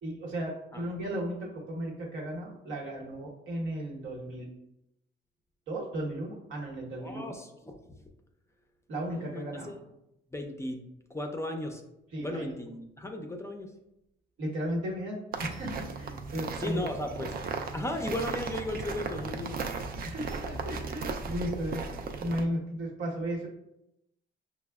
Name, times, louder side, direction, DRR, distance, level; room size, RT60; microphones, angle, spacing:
voice 1, 0.0-4.5 5.7-7.3 8.9-9.8 12.1-12.5 14.4-16.8 20.0-23.5, right 1 dB, 75° right, -2 dB, 1.1 m, -35 dB
voice 2, 7.0-8.0 9.1-9.8 10.3-10.8 11.1-11.8 12.2-13.7 16.6-17.4 17.7-19.6, left 1 dB, 15° left, 3 dB, 0.4 m, -36 dB
sound 1, 15.3-22.4, right 4 dB, 50° right, 0.4 m, -36 dB
5.6 x 2.0 x 2.3 m, 0.85 s
cardioid pair, 90°, 20 cm